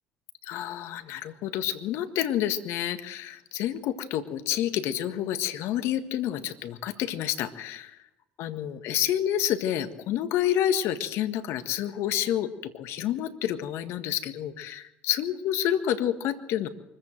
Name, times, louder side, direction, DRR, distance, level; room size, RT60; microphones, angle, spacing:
voice 1, 0.4-8.0 8.4-16.7, left 11 dB, 65° left, 9 dB, 1.7 m, -29 dB
24.0 x 15.0 x 7.7 m, 0.93 s
hypercardioid pair, 65°, 5 cm